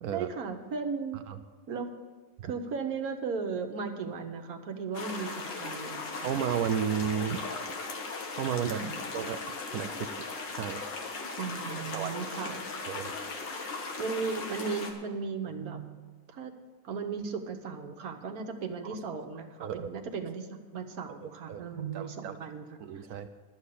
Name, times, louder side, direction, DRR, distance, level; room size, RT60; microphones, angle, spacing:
voice 1, 0.1-1.2 1.7-1.9 2.4-6.1 8.7-8.9 11.4-12.6 14.0-16.0 16.3-16.5 16.8-22.6 22.9-23.0, right 5 dB, 55° right, 5 dB, 1.3 m, -36 dB
sound 1, 4.9-14.9, left 3 dB, 70° left, 2.1 m, -38 dB
voice 2, 6.2-7.4 8.4-8.8 9.1-10.1 10.5-10.8 11.9-12.1 12.9-13.1 18.8-19.0 19.6-19.9 21.2-21.6 21.9-22.3 22.8-23.3, right 8 dB, 80° right, 8 dB, 0.8 m, -33 dB
12.0 x 7.2 x 8.2 m, 1.5 s
omnidirectional pair, 2.1 m